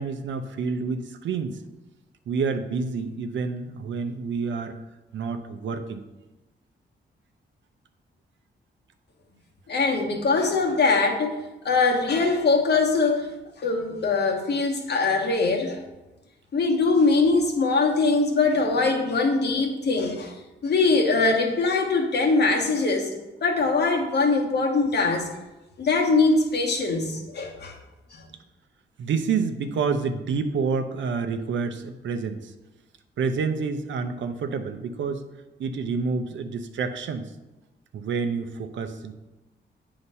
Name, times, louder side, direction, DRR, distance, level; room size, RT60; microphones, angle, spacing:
voice 1, 0.0-1.6 2.3-4.8 5.1-6.0 29.0-32.5 33.2-35.2 35.6-37.3 37.9-39.1, right 5 dB, 80° right, 8 dB, 0.6 m, -28 dB
voice 2, 9.7-11.4 11.6-13.3 13.6-15.8 16.5-20.3 20.6-23.1 23.4-25.3 25.8-27.7 28.1-28.2, left 3 dB, 60° left, 2 dB, 1.1 m, -22 dB
8.1 x 2.9 x 5.4 m, 1.0 s
cardioid pair, 80°, 19 cm